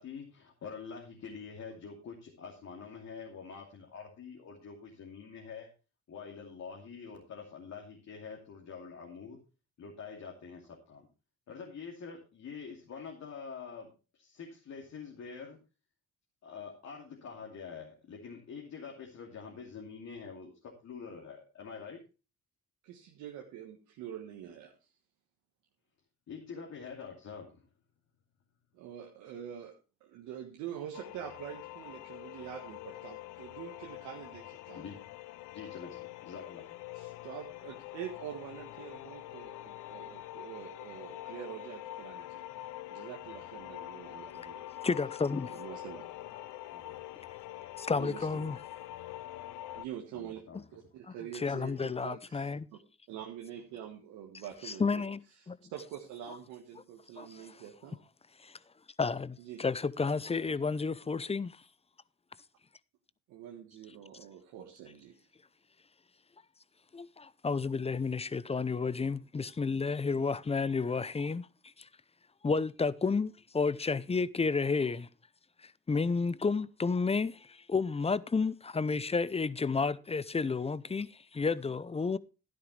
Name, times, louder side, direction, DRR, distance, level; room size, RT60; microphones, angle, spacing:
voice 1, 0.0-5.7 6.1-9.4 9.8-11.1 11.5-15.6 16.4-22.0 26.3-27.6 34.7-35.0 35.5-36.6 46.7-47.0 50.1-50.6, left 5 dB, 60° left, 2.8 m, -46 dB
voice 2, 22.8-24.9 28.7-29.7 30.0-34.8 36.9-42.4 42.9-44.6 45.5-46.1 47.9-48.5 49.7-50.4 50.7-52.8 53.1-55.0 55.3-58.0 59.4-59.6 63.3-65.1, right 10 dB, 85° right, 1.6 m, -45 dB
sound 1, 30.9-49.9, left 15 dB, 80° left, 0.6 m, -45 dB
voice 3, 44.8-45.5 47.8-48.6 51.1-52.7 54.6-55.2 55.5-55.6 57.2-57.5 58.4-58.5 59.0-61.6 66.9-71.5 71.8-71.9 72.4-75.1 75.6-82.2, left 4 dB, 20° left, 0.7 m, -31 dB
12.5 x 10.5 x 3.3 m
supercardioid pair, 60°, 30 cm